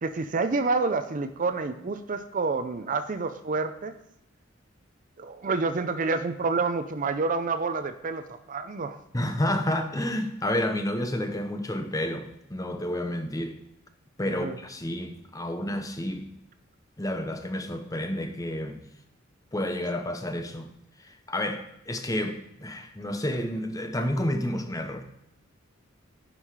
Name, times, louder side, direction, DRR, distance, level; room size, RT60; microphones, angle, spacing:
voice 1, 0.0-3.9 5.2-9.0 14.4-14.5, right 4 dB, 40° right, 10 dB, 0.5 m, -28 dB
voice 2, 9.1-13.6 14.2-16.3 17.0-18.8 19.5-20.7 21.0-25.0, left 1 dB, 15° left, 6 dB, 0.8 m, -30 dB
10.0 x 5.6 x 4.8 m, 0.80 s
head